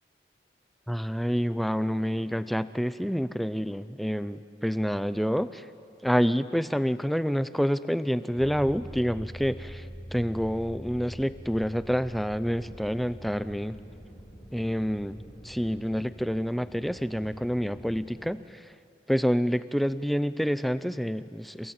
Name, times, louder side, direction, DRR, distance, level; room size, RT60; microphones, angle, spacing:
voice 1, 0.9-5.7 6.0-13.8 14.5-18.7 19.1-21.7, equal, ahead, 13 dB, 0.5 m, -28 dB
sound 1, 8.4-18.3, equal, 30° left, 6.2 m, -45 dB
28.5 x 17.5 x 8.8 m, 2.4 s
head